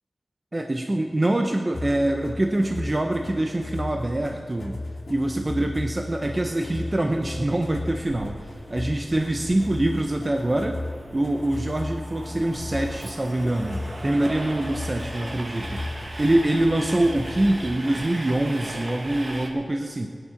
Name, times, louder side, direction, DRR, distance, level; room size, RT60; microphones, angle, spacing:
voice 1, 0.5-4.8 5.1-10.8 11.1-20.1, right 1 dB, 30° right, 4 dB, 0.8 m, -25 dB
sound 1, 1.7-17.9, left 2 dB, 65° left, 2.2 m, -36 dB
Train, 6.0-19.5, right 1 dB, 45° right, 1.6 m, -39 dB
17.5 x 10.0 x 5.8 m, 2.1 s
wide cardioid pair, 100°, 0 cm